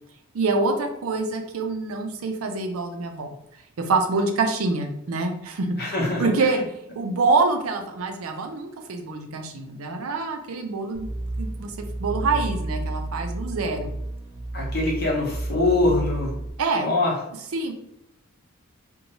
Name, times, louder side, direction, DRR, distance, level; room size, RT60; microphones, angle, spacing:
voice 1, 0.3-3.3 3.8-5.9 6.2-6.6 7.0-11.1 11.4-13.9 16.6-16.9 17.5-17.7, right 3 dB, 85° right, 5 dB, 0.5 m, -26 dB
voice 2, 5.8-6.6 14.5-16.4 16.7-17.2, left 2 dB, 50° left, -3 dB, 0.9 m, -24 dB
sound 1, 10.9-16.5, right 2 dB, 25° right, 0.4 m, -31 dB
2.6 x 2.2 x 2.9 m, 0.79 s
head